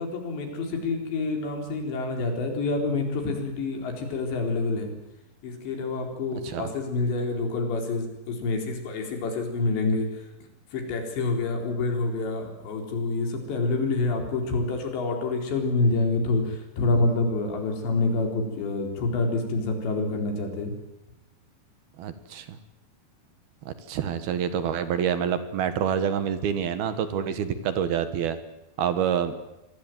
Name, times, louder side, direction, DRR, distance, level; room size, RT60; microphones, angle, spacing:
voice 1, 0.0-4.9 5.4-10.3 10.7-20.7, left 3 dB, 80° left, 4 dB, 6.3 m, -27 dB
voice 2, 22.0-22.6 23.7-28.4 28.8-29.3, right 8 dB, 65° right, 11 dB, 3.1 m, -27 dB
25.5 x 19.5 x 9.2 m, 0.91 s
omnidirectional pair, 5.1 m